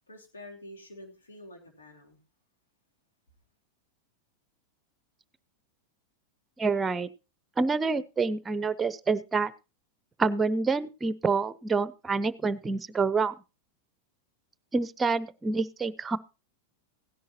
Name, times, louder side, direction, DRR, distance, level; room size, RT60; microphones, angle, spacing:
voice 1, 0.1-2.2, left 1 dB, 90° left, 1 dB, 2.9 m, -48 dB
voice 2, 6.6-7.1 7.6-9.5 10.2-13.3 14.7-16.2, right 4 dB, 15° right, 17 dB, 0.7 m, -27 dB
16.5 x 10.5 x 2.9 m, 0.29 s
hypercardioid pair, 100°, 0 cm